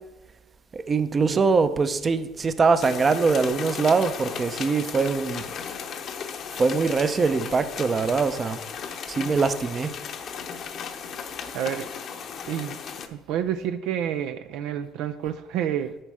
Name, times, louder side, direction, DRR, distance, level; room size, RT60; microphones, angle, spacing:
voice 1, 0.7-5.4 6.6-8.6 9.1-9.9, right 4 dB, 35° right, 11 dB, 0.7 m, -23 dB
sound 1, 2.8-13.1, left 7 dB, 55° left, 0.8 m, -36 dB
voice 2, 11.5-11.9 12.5-12.8 13.1-16.0, right 10 dB, 70° right, 9 dB, 0.4 m, -29 dB
11.0 x 4.2 x 4.8 m, 1.1 s
supercardioid pair, 75°, 0 cm